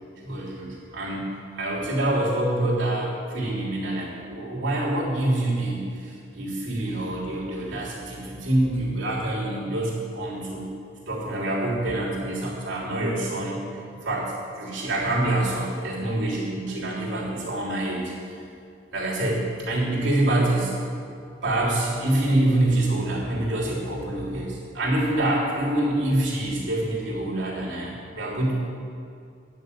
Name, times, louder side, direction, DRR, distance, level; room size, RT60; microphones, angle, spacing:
voice 1, 0.2-10.7 11.1-13.6 13.9-18.0 18.9-20.7 21.4-28.8, right 1 dB, 80° right, -5 dB, 3.4 m, -26 dB
10.5 x 6.3 x 8.7 m, 2.4 s
head